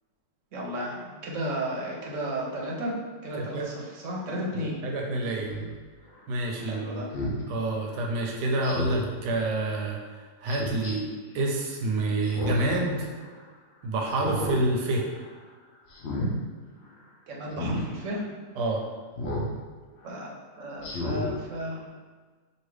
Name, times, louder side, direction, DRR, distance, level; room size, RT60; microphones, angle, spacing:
voice 1, 0.5-4.8 6.6-7.1 17.3-18.3 20.0-21.8, equal, 55° right, -3 dB, 1.0 m, -33 dB
voice 2, 4.8-5.5 6.3-7.0 7.5-10.0 10.4-11.0 11.3-13.1 13.8-15.1 18.6-18.8, right 2 dB, 75° right, 0 dB, 1.3 m, -27 dB
Speech synthesizer, 5.5-5.7 7.1-7.4 8.6-9.1 10.5-10.9 12.2-12.8 13.2-13.3 14.1-14.6 15.0-15.3 15.9-16.3 17.5-17.8 19.2-19.5 20.0-20.1 20.8-21.3 21.8-21.9, left 1 dB, 55° left, 0.7 m, -32 dB
5.3 x 2.5 x 3.2 m, 1.4 s
omnidirectional pair, 1.9 m